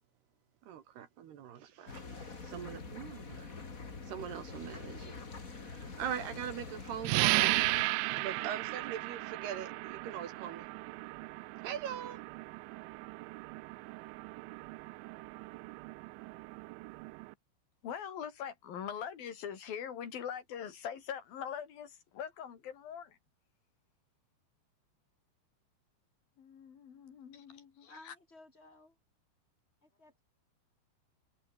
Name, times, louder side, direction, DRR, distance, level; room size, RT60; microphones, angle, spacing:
voice 1, 0.6-3.5 4.0-5.2 5.6-7.6 8.1-10.7 11.6-12.2, right 9 dB, 60° right, 3.6 m, -41 dB
sound 1, 1.9-7.8, left 4 dB, 30° left, 1.6 m, -45 dB
sound 2, 7.0-17.3, right 22 dB, 80° right, 2.7 m, -36 dB
voice 2, 17.8-23.2 26.4-28.1, left 8 dB, 50° left, 4.8 m, -42 dB
voice 3, 27.9-29.0 29.8-30.2, left 2 dB, 10° left, 7.5 m, -56 dB
omnidirectional pair, 5.8 m